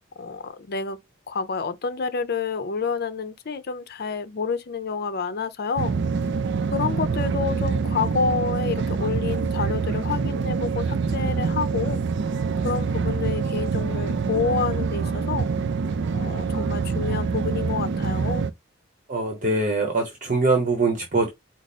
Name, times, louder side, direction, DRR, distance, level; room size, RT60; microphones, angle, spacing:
voice 1, 0.2-1.0 1.3-5.9 6.7-12.0 12.6-15.5 16.1-18.5, left 5 dB, 55° left, 0.6 m, -28 dB
sound 1, 5.8-18.5, right 5 dB, 60° right, 0.4 m, -25 dB
voice 2, 19.1-21.3, right 3 dB, 40° right, 1.0 m, -23 dB
4.8 x 2.0 x 4.1 m
head